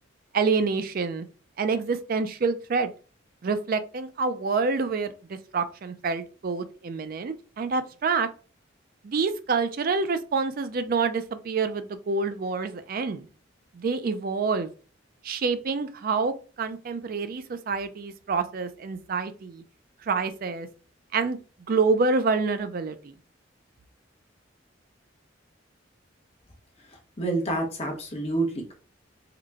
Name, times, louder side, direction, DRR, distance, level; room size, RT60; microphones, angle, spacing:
voice 1, 0.3-1.3 1.6-2.9 3.4-8.3 9.0-13.3 13.7-14.7 15.2-19.6 20.1-20.7 21.1-21.4 21.7-23.1, right 4 dB, 50° right, 10 dB, 0.4 m, -27 dB
voice 2, 26.8-28.7, right 2 dB, 35° left, 2 dB, 0.9 m, -29 dB
3.8 x 2.1 x 3.4 m, 0.37 s
head